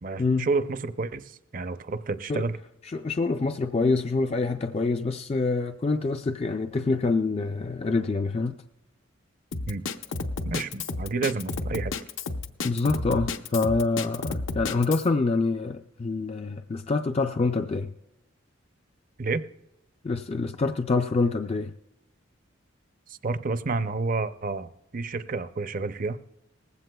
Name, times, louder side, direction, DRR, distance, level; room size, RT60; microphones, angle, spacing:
voice 1, 0.0-2.6 9.7-9.8 10.4-11.9 19.2-19.4 23.1-26.2, right 3 dB, 40° right, 0.5 m, -30 dB
voice 2, 2.9-8.6 12.6-17.9 20.0-21.7, left 3 dB, 30° left, 0.4 m, -26 dB
Drum kit, 9.5-15.1, left 3 dB, 75° left, 0.7 m, -31 dB
19.5 x 15.5 x 2.3 m
head